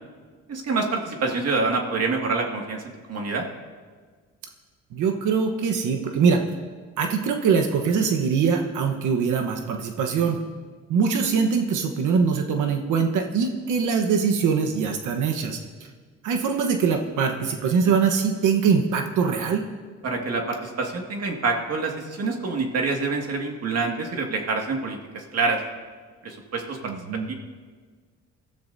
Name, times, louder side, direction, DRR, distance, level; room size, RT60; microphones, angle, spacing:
voice 1, 0.5-2.8 3.1-3.4 20.0-25.6 26.2-27.3, right 3 dB, 55° right, 1 dB, 2.0 m, -26 dB
voice 2, 4.9-6.4 7.0-10.4 10.9-15.6 16.2-19.6 26.8-27.3, right 6 dB, 85° right, 4 dB, 1.2 m, -22 dB
21.0 x 13.5 x 2.7 m, 1.5 s
cardioid pair, 90°, 30 cm